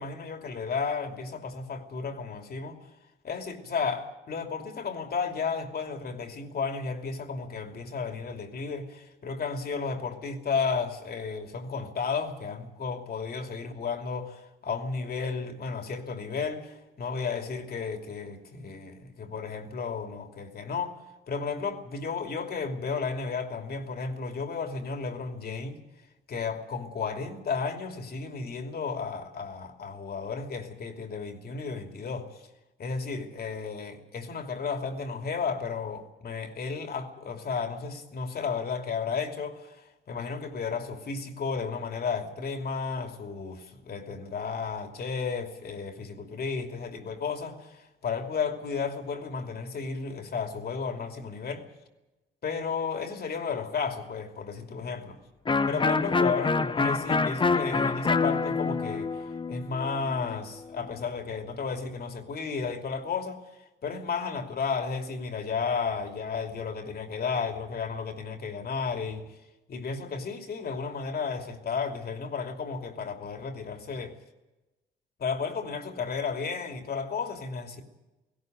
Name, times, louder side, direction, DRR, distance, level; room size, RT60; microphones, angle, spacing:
voice 1, 0.0-2.9 3.2-21.0 21.3-25.8 26.3-32.3 32.8-51.6 52.4-55.2 55.7-69.3 69.7-74.1 75.2-77.8, left 5 dB, 50° left, 2.9 m, -33 dB
Electric guitar, 55.5-61.1, left 4 dB, 25° left, 0.7 m, -27 dB
18.0 x 16.5 x 9.3 m
cardioid pair, 90°, 20 cm